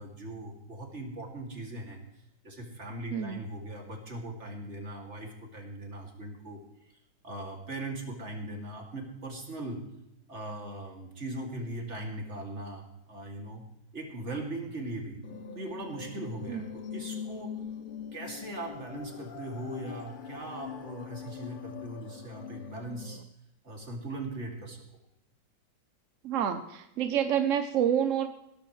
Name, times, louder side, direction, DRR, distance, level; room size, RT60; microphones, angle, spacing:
voice 1, 0.0-6.9 7.2-9.8 10.3-13.6 13.9-15.2 15.5-17.6 18.1-23.2 23.6-24.8, right 1 dB, 40° right, 1 dB, 2.8 m, -40 dB
voice 2, 3.1-3.4 16.5-16.6 26.2-28.3, right 9 dB, 60° right, 9 dB, 0.9 m, -28 dB
sound 1, 15.2-23.2, left 7 dB, 55° left, 0.5 m, -42 dB
17.0 x 14.0 x 3.2 m, 0.84 s
omnidirectional pair, 1.9 m